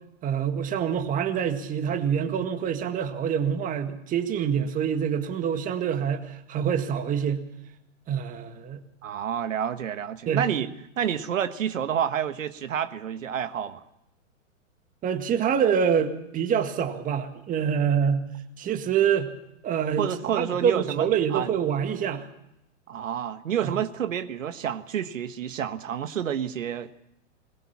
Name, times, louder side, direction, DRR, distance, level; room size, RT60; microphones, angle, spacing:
voice 1, 0.2-7.4 8.1-8.8 10.2-10.4 15.0-18.2 18.6-19.3 19.6-22.2 23.6-23.8, right 8 dB, 20° right, 7 dB, 1.8 m, -26 dB
voice 2, 9.0-10.7 11.0-13.8 20.0-21.5 22.9-26.9, right 9 dB, 85° right, 11 dB, 1.5 m, -29 dB
21.5 x 21.0 x 7.3 m, 0.84 s
hypercardioid pair, 140°, 38 cm